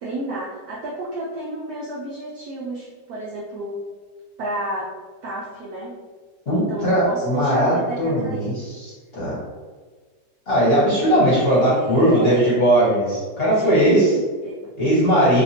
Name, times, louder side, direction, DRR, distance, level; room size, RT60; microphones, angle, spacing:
voice 1, 0.0-3.8 4.4-4.9 5.2-5.9 6.5-8.5 11.4-12.6 13.6-14.6, right 2 dB, 75° right, -4 dB, 0.8 m, -30 dB
voice 2, 6.4-9.4 10.5-14.1 14.8-15.4, equal, 35° left, -9 dB, 1.1 m, -19 dB
3.1 x 2.8 x 2.8 m, 1.4 s
omnidirectional pair, 2.1 m